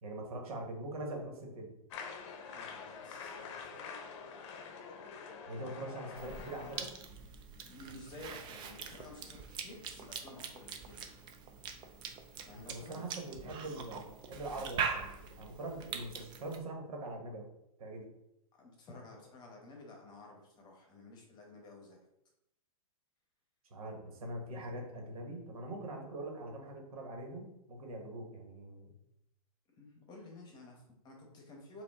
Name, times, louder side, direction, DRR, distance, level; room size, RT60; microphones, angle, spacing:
voice 1, 0.0-1.7 5.5-6.9 12.5-17.4 17.8-18.1 23.7-28.9, right 1 dB, 70° right, 1 dB, 1.5 m, -43 dB
sound 1, 1.9-6.9, left 5 dB, 50° left, 0.7 m, -46 dB
voice 2, 2.5-3.8 5.5-5.8 7.6-11.1 12.4-13.1 18.6-22.0 29.8-31.8, left 2 dB, 20° left, 0 dB, 1.1 m, -53 dB
Cough / Chewing mastication, 6.2-16.6, right 6 dB, 25° right, 0.5 m, -43 dB
5.0 x 2.7 x 3.6 m, 0.83 s
hypercardioid pair, 135°, 19 cm